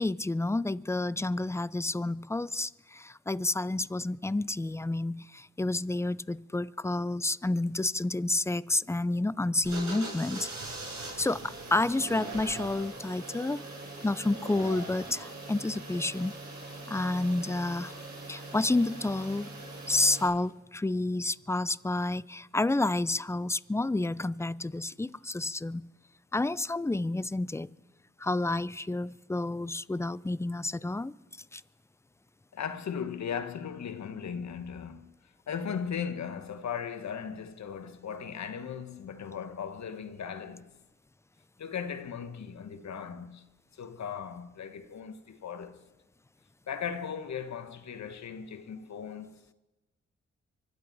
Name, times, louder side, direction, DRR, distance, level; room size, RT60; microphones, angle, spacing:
voice 1, 0.0-10.5 11.2-13.6 14.0-16.3 16.9-17.9 18.3-19.5 19.9-25.9 26.3-27.7 28.2-31.1 31.5-31.6, left 2 dB, 10° left, 0.5 m, -30 dB
sound 1, 9.6-20.3, right 2 dB, 75° right, 6.0 m, -41 dB
voice 2, 32.5-35.1 35.5-40.7 41.6-43.4 43.7-45.8 46.7-49.5, left 7 dB, 70° left, 1.1 m, -37 dB
24.5 x 11.5 x 4.1 m
supercardioid pair, 45°, 29 cm